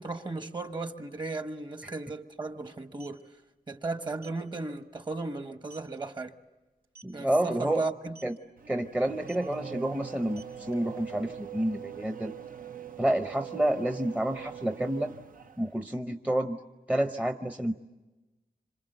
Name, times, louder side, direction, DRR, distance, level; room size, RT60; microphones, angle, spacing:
voice 1, 0.0-3.2 3.7-6.4 7.1-8.1, right 3 dB, 30° right, 1.2 m, -35 dB
sound 1, 1.7-1.8 2.7-3.2 4.2-4.4 4.8-5.0 5.4-5.5 5.7-6.0 6.8-7.2 8.1-8.4 9.2-9.5 10.2-11.5, right 3 dB, 90° right, 4.0 m, -53 dB
voice 2, 7.0-7.8 8.2-8.3 8.7-12.3 13.0-15.1 15.6-16.6 16.9-17.7, right 1 dB, 10° right, 0.8 m, -29 dB
Race car auto racing / Accelerating revving vroom, 8.6-15.8, right 9 dB, 60° right, 0.8 m, -43 dB
26.5 x 26.5 x 8.0 m
wide cardioid pair, 110°, 16 cm